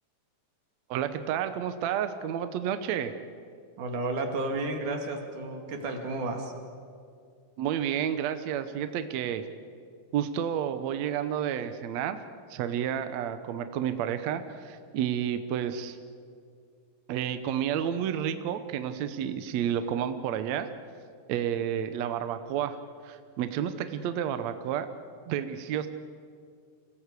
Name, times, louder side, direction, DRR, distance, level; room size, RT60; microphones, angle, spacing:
voice 1, 0.9-3.1 7.6-9.4 10.1-12.2 12.5-16.0 17.1-20.7 21.3-22.8 23.0-24.9 25.3-25.9, right 9 dB, 75° right, 9 dB, 1.6 m, -30 dB
voice 2, 3.8-6.5, right 2 dB, 60° right, 3 dB, 3.7 m, -32 dB
27.0 x 17.0 x 8.3 m, 2.3 s
omnidirectional pair, 4.2 m